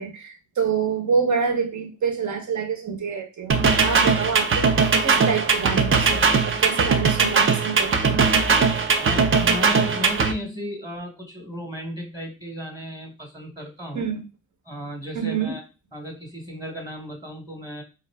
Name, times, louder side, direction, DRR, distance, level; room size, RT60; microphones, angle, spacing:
voice 1, 0.0-4.7 5.0-8.3 13.9-14.2 15.1-15.6, right 6 dB, 65° right, 4 dB, 1.0 m, -27 dB
sound 1, 3.5-10.3, right 5 dB, 40° right, 0.5 m, -20 dB
voice 2, 9.0-14.1 14.7-15.6 15.9-17.8, equal, 10° right, 2 dB, 1.0 m, -34 dB
3.7 x 2.5 x 3.3 m, 0.29 s
cardioid pair, 95°, 32 cm